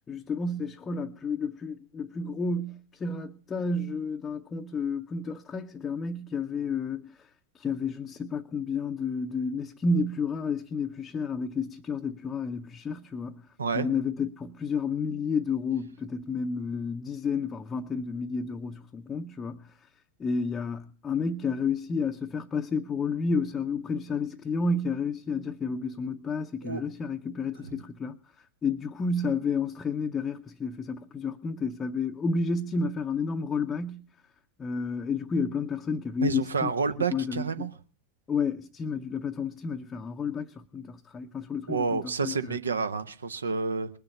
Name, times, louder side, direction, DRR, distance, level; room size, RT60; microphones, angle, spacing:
voice 1, 0.1-13.4 13.7-19.9 20.2-28.2 28.6-34.0 34.6-36.7 37.1-37.7 38.3-42.6, left 4 dB, 20° left, 0.6 m, -31 dB
voice 2, 36.2-37.7 41.7-43.9, right 5 dB, 70° right, 0.8 m, -29 dB
20.0 x 6.9 x 6.7 m
figure-of-eight pair, 90°, 0 cm